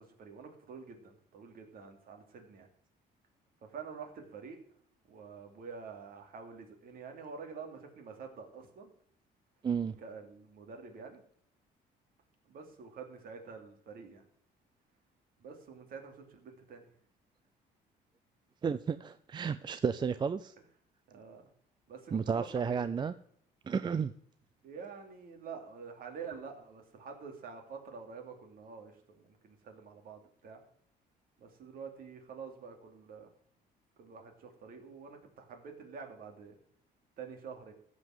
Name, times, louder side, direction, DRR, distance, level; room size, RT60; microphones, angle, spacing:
voice 1, 0.0-2.7 3.6-4.6 5.1-8.9 9.9-11.2 12.4-14.2 15.4-16.9 21.1-21.5 21.9-23.0 24.6-30.6 31.4-33.3 34.0-36.6 37.2-37.7, right 5 dB, 60° right, 3 dB, 2.9 m, -47 dB
voice 2, 9.6-9.9 18.6-20.5 22.1-23.1 23.7-24.1, right 6 dB, 25° right, 12 dB, 0.5 m, -32 dB
14.5 x 5.2 x 7.8 m, 0.65 s
cardioid pair, 110°, 17 cm